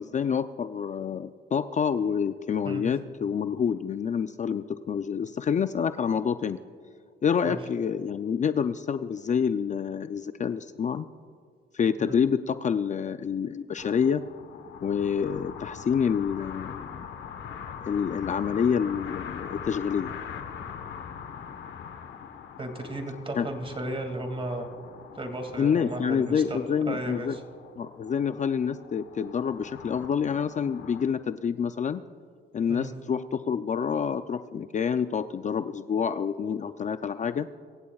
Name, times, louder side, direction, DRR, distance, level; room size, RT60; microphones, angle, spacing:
voice 1, 0.0-6.6 7.2-11.1 11.7-14.2 14.8-17.0 17.8-20.1 23.4-23.5 25.6-27.4 27.8-32.0 32.5-37.5, left 7 dB, 40° left, 11 dB, 0.5 m, -27 dB
sound 1, 13.8-31.0, left 7 dB, 70° left, 1.2 m, -42 dB
voice 2, 22.6-24.7 25.1-26.6 26.9-27.4 32.7-32.9, right 1 dB, 25° right, 4 dB, 2.3 m, -34 dB
24.0 x 15.0 x 2.4 m, 2.2 s
cardioid pair, 90°, 20 cm